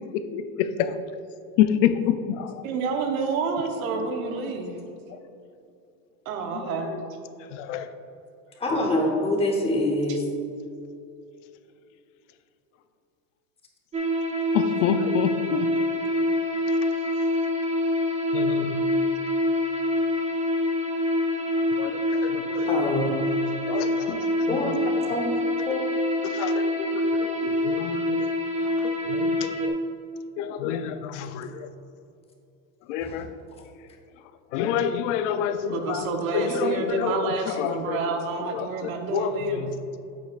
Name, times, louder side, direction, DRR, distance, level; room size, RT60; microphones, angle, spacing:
voice 1, 0.1-1.0 1.6-2.6 3.9-4.1 6.5-7.0 7.5-7.9 8.7-8.8 14.5-15.7 18.3-18.9 21.7-22.7 23.7-24.8 26.2-28.3 28.8-29.8 30.4-31.7 32.9-33.3 34.5-39.8, left 9 dB, 65° left, 10 dB, 0.6 m, -28 dB
voice 2, 2.6-4.8 6.2-6.9 35.7-39.6, right 4 dB, 85° right, 4 dB, 1.2 m, -28 dB
voice 3, 8.6-10.2 22.7-23.2 24.5-25.3 25.7-25.8 33.0-33.2, left 1 dB, 15° left, 1 dB, 0.9 m, -25 dB
sound 1, 13.9-29.7, left 1 dB, 15° right, 0.7 m, -26 dB
8.6 x 7.6 x 2.5 m, 2.6 s
supercardioid pair, 145°, 41 cm